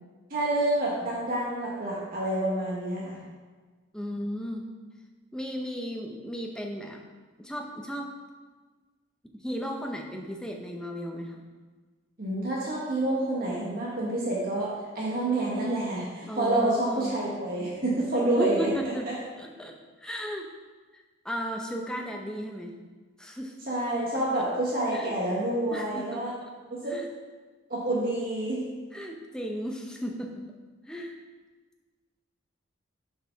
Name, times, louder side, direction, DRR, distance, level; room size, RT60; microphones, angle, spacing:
voice 1, 0.3-3.2 12.2-18.7 23.7-26.3 26.7-27.0 27.7-28.7, right 1 dB, 45° right, -5 dB, 1.3 m, -28 dB
voice 2, 3.9-4.7 5.3-7.0 7.4-8.1 9.4-11.5 16.3-17.2 18.1-19.1 19.3-20.5 20.9-22.7 23.2-23.5 24.9-25.1 25.7-26.5 26.9-27.1 28.9-30.4 30.9-31.1, equal, 5° left, 1 dB, 0.7 m, -35 dB
6.8 x 4.9 x 5.7 m, 1.4 s
head